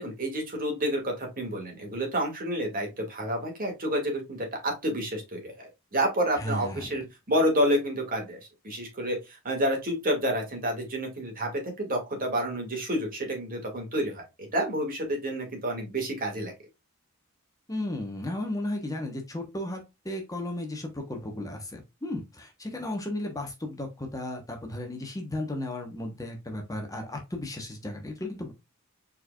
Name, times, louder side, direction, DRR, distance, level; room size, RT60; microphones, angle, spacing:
voice 1, 0.0-4.4 4.6-8.4 8.6-16.5, equal, 45° right, 1 dB, 2.2 m, -29 dB
voice 2, 6.3-6.9 17.7-28.5, left 1 dB, 15° left, 3 dB, 1.1 m, -34 dB
4.6 x 4.5 x 2.4 m, 0.23 s
head